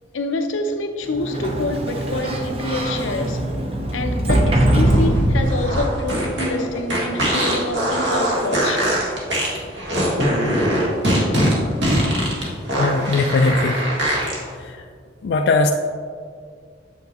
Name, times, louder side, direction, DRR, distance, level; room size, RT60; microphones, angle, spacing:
voice 1, 0.1-3.5 3.9-9.1, left 2 dB, 90° left, 6 dB, 0.6 m, -26 dB
Sliding door, 1.1-5.8, right 1 dB, 30° right, 0.6 m, -21 dB
sound 1, 4.7-14.4, equal, 65° right, 1.5 m, -21 dB
voice 2, 12.8-13.8 14.6-14.7 15.2-15.7, left 3 dB, 60° left, 4 dB, 0.3 m, -19 dB
7.8 x 5.8 x 2.9 m, 2.1 s
head